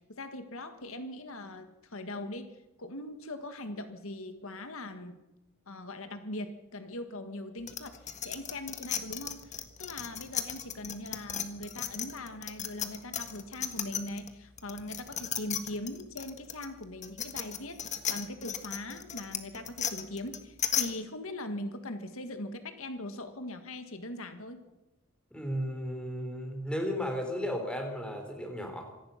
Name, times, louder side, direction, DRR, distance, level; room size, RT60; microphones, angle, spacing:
voice 1, 0.0-2.5 2.8-5.2 5.7-24.6, left 1 dB, 70° left, 8 dB, 1.7 m, -41 dB
sound 1, 7.7-14.3 14.6-20.9, left 9 dB, 30° left, 1.7 m, -35 dB
voice 2, 25.3-28.9, equal, 5° left, 3 dB, 4.1 m, -34 dB
26.0 x 18.0 x 5.9 m, 1.0 s
head